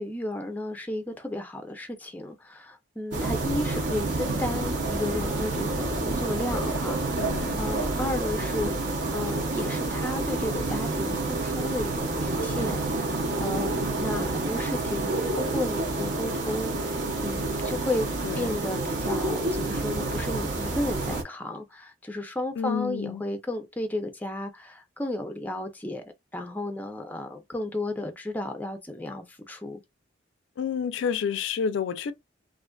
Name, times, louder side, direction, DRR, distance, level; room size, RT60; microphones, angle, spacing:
voice 1, 0.0-18.1 18.3-29.8, left 1 dB, 10° left, 0.4 m, -33 dB
sound 1, 3.1-21.2, right 2 dB, 70° right, 0.8 m, -28 dB
voice 2, 7.2-7.6 18.2-18.6 22.6-23.2 30.6-32.1, left 7 dB, 80° left, 0.3 m, -29 dB
2.5 x 2.4 x 2.2 m
head